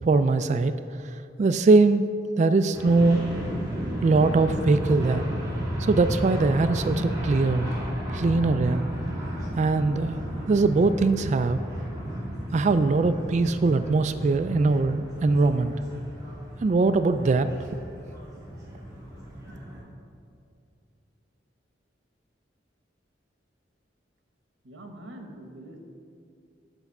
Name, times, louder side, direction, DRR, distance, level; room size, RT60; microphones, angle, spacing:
voice 1, 0.0-0.7 1.4-2.1 2.4-3.3 4.0-5.2 5.8-7.7 8.1-8.9 9.6-10.2 10.5-11.6 12.5-15.7 16.6-17.5, right 3 dB, 40° right, 10 dB, 0.3 m, -21 dB
sound 1, 2.7-19.8, equal, 20° right, 2.2 m, -33 dB
voice 2, 24.6-25.8, right 1 dB, 80° right, 3 dB, 1.2 m, -43 dB
8.1 x 5.3 x 7.1 m, 2.4 s
head